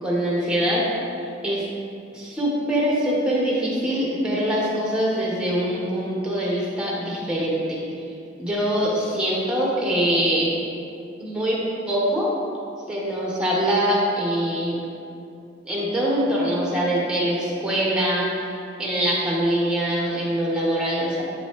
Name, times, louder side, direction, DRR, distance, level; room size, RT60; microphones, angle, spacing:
voice 1, 0.0-0.8 1.4-1.7 2.1-7.8 8.4-10.5 11.2-11.6 11.9-12.3 12.9-14.8 15.6-18.5 18.8-21.2, equal, 5° right, -5 dB, 1.3 m, -23 dB
7.8 x 5.3 x 3.2 m, 2.5 s
head